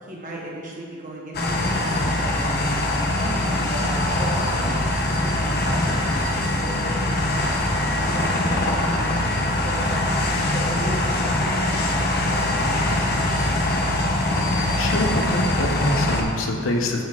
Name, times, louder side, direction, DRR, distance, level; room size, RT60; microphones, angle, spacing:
voice 1, 0.0-4.8 5.0-7.6 7.9-9.3 9.6-13.6, right 1 dB, 40° right, -3 dB, 1.1 m, -36 dB
sound 1, 1.3-16.2, left 1 dB, 50° left, 0.7 m, -22 dB
voice 2, 14.8-17.0, left 1 dB, 85° left, 1 dB, 0.8 m, -25 dB
10.0 x 5.8 x 2.4 m, 2.1 s
head